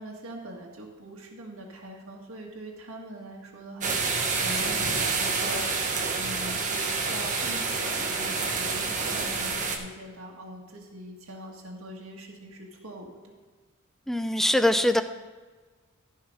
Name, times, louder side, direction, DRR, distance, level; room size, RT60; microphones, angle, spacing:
voice 1, 0.0-5.6 6.2-13.3, right 1 dB, 70° right, -2 dB, 1.9 m, -42 dB
sound 1, 3.8-9.8, right 4 dB, 35° right, 1.4 m, -28 dB
voice 2, 14.1-15.0, left 1 dB, ahead, 9 dB, 0.5 m, -22 dB
14.5 x 5.7 x 5.4 m, 1.4 s
head